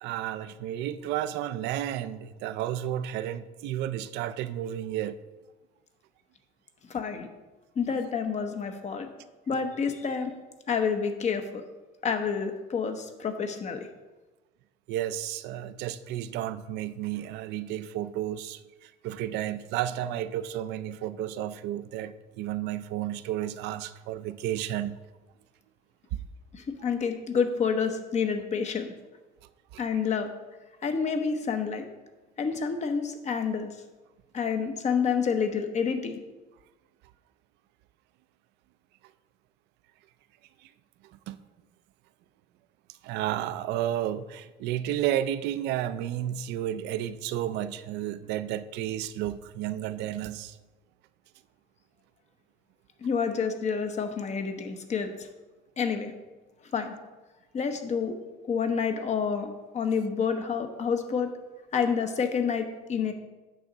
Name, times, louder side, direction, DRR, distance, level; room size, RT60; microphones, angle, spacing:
voice 1, 0.0-5.2 14.9-25.0 26.1-26.2 29.7-29.8 40.6-40.7 41.3-41.4 42.9-50.6, right 12 dB, 85° right, 13 dB, 0.5 m, -32 dB
voice 2, 6.9-7.3 7.8-9.1 9.5-10.3 10.7-11.6 12.0-13.9 26.5-28.9 29.8-30.3 30.8-31.8 32.4-33.7 34.3-36.2 53.0-55.3 55.8-56.1 56.7-56.9 57.5-58.1 58.4-61.3 61.7-63.1, left 6 dB, 45° left, 7 dB, 1.0 m, -28 dB
8.4 x 6.3 x 3.9 m, 1.2 s
cardioid pair, 110°, 17 cm